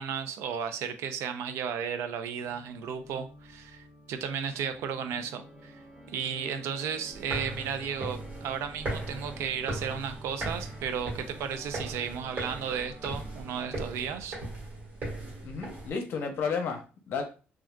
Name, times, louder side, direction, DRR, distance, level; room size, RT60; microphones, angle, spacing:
voice 1, 0.0-5.8 6.1-14.4, right 7 dB, 80° right, 0.4 m, -34 dB
Organ, 2.3-14.1, equal, 15° right, 0.7 m, -50 dB
sound 1, 7.1-15.9, right 2 dB, 40° right, 1.5 m, -38 dB
voice 2, 15.4-17.2, left 5 dB, 55° left, 0.7 m, -32 dB
3.6 x 2.4 x 2.2 m
cardioid pair, 170°, 5 cm